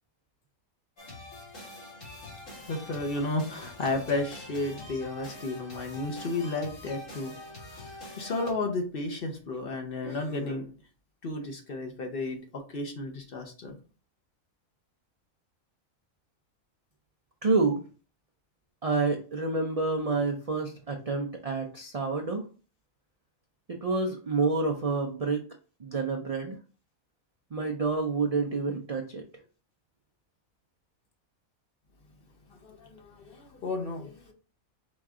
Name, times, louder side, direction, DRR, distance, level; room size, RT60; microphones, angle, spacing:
sound 1, 1.0-8.5, left 2 dB, 65° left, 2.0 m, -45 dB
voice 1, 2.7-7.3 7.7-10.7 11.2-13.8 32.5-34.3, left 2 dB, 50° left, 0.8 m, -33 dB
voice 2, 17.4-17.8 18.8-22.5 23.7-25.4 25.8-26.6 27.5-29.2, right 3 dB, 70° right, 0.3 m, -28 dB
5.0 x 2.4 x 3.6 m
omnidirectional pair, 1.4 m